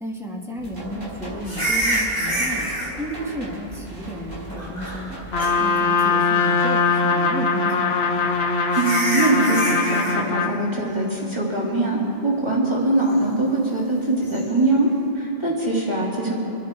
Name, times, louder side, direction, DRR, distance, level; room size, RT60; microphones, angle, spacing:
voice 1, 0.0-2.7 3.0-5.2 5.6-8.2, equal, 5° right, -2 dB, 1.9 m, -33 dB
sound 1, 0.6-5.6, equal, 50° right, 4.1 m, -37 dB
sound 2, 1.4-2.9 4.6-5.1 5.4-5.5 6.2-6.7 8.1-8.2 8.7-10.2 14.2-14.4, right 1 dB, 20° left, 3.1 m, -26 dB
Trumpet, 5.3-10.6, left 4 dB, 80° left, 1.2 m, -21 dB
voice 2, 8.7-14.9 15.1-16.3, right 2 dB, 25° right, -6 dB, 3.0 m, -22 dB
26.5 x 10.0 x 4.6 m, 2.6 s
omnidirectional pair, 1.1 m